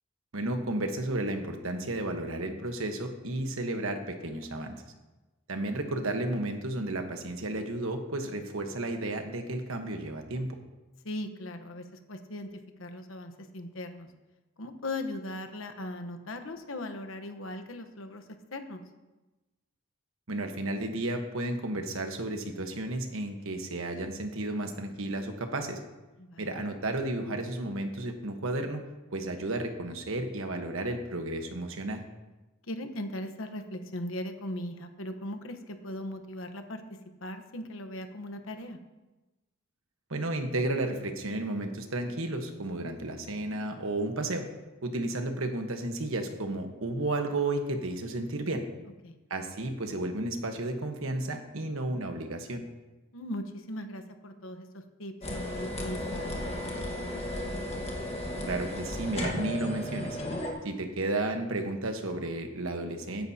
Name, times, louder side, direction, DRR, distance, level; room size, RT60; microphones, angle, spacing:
voice 1, 0.3-4.8 5.5-10.6 20.3-25.8 26.4-28.8 29.1-32.0 40.1-44.5 44.8-48.6 49.3-52.6 58.5-60.2 60.6-63.3, right 2 dB, 75° right, 5 dB, 1.2 m, -32 dB
voice 2, 11.0-14.1 14.6-18.2 18.5-18.8 26.2-26.6 32.7-36.8 37.2-38.8 49.0-49.2 53.1-56.3, left 1 dB, 70° left, 7 dB, 1.1 m, -39 dB
sound 1, 55.2-60.5, left 1 dB, 30° left, 1.5 m, -34 dB
15.5 x 10.5 x 2.8 m, 1.1 s
head